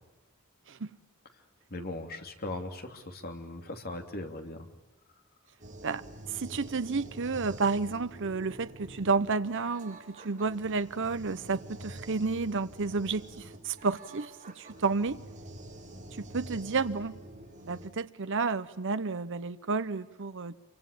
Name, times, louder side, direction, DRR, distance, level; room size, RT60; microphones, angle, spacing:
voice 1, 1.7-4.7, left 2 dB, 45° left, 3.1 m, -39 dB
sound 1, 5.6-17.9, right 1 dB, 35° right, 5.5 m, -47 dB
voice 2, 5.8-15.2 16.2-17.2 17.7-20.6, right 4 dB, 60° right, 0.9 m, -31 dB
27.5 x 24.5 x 8.6 m
head